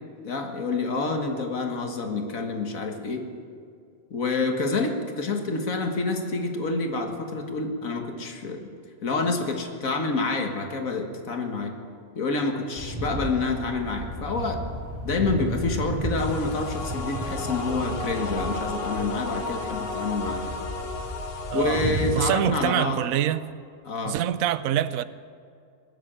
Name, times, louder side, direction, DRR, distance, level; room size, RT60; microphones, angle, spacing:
voice 1, 0.2-3.3 4.1-8.7 9.0-11.7 12.2-14.6 15.0-20.5 21.5-23.0 23.9-24.2, left 3 dB, 80° left, 4 dB, 2.0 m, -28 dB
sound 1, 12.8-22.1, right 1 dB, 20° right, 3.2 m, -33 dB
sound 2, 16.2-22.3, left 3 dB, 50° left, 1.2 m, -34 dB
voice 2, 21.5-23.5 24.0-25.0, right 11 dB, 90° right, 15 dB, 1.0 m, -26 dB
20.0 x 7.7 x 8.8 m, 2.3 s
omnidirectional pair, 1.4 m